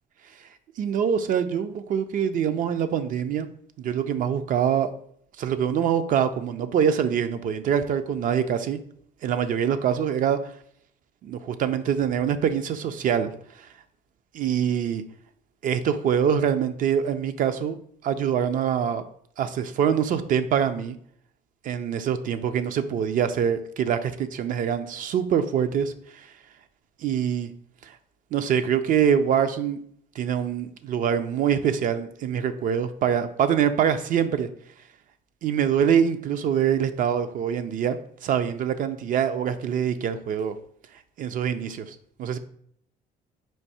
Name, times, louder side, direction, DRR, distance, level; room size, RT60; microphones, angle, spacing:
voice 1, 0.8-3.5 3.8-4.9 5.4-8.8 9.2-10.5 11.2-13.3 13.6-13.7 14.3-15.0 15.6-17.8 18.0-19.0 19.4-21.0 21.6-26.3 27.0-27.5 27.8-28.0 28.3-29.8 30.2-34.5 35.4-40.5 41.2-42.4, right 8 dB, 55° right, 10 dB, 0.4 m, -24 dB
4.6 x 2.6 x 4.1 m, 0.65 s
cardioid pair, 110°, 17 cm